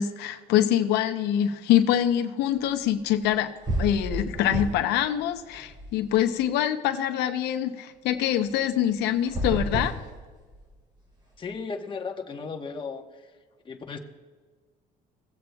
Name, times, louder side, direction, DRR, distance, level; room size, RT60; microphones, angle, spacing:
voice 1, 0.0-3.5 3.8-9.9, left 11 dB, 85° left, 7 dB, 0.7 m, -24 dB
sound 1, 3.2-3.3 3.6-5.0 5.3-6.4 9.2-10.7, right 1 dB, 25° right, 2.7 m, -31 dB
voice 2, 11.4-13.3 13.6-14.0, left 5 dB, 30° left, 3 dB, 1.1 m, -35 dB
18.0 x 7.8 x 2.3 m, 1.4 s
cardioid pair, 110°, 17 cm